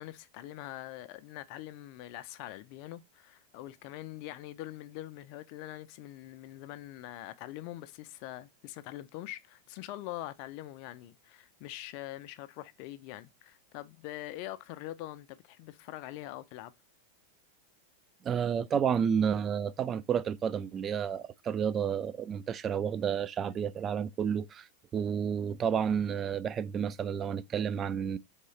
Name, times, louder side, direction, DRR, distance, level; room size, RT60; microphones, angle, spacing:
voice 1, 0.0-16.7 18.9-19.0, left 15 dB, 45° left, 0.4 m, -43 dB
voice 2, 18.2-24.7 24.9-28.2, right 7 dB, 25° right, 0.3 m, -30 dB
3.6 x 3.1 x 4.2 m
figure-of-eight pair, 90°, 0 cm